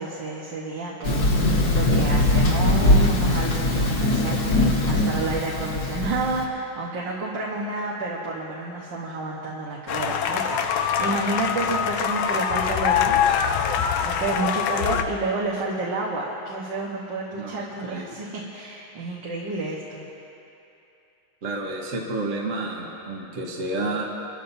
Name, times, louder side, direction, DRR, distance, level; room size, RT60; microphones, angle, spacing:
voice 1, 0.0-13.4 14.0-20.1, right 3 dB, 65° right, -4 dB, 1.9 m, -30 dB
Thunder, 1.0-6.4, left 1 dB, 55° left, 2.0 m, -21 dB
sound 1, 9.9-15.0, left 8 dB, 90° left, 1.5 m, -24 dB
voice 2, 17.3-18.2 21.4-24.0, right 2 dB, 45° right, -2 dB, 1.5 m, -30 dB
25.0 x 14.0 x 2.7 m, 2.9 s
omnidirectional pair, 2.2 m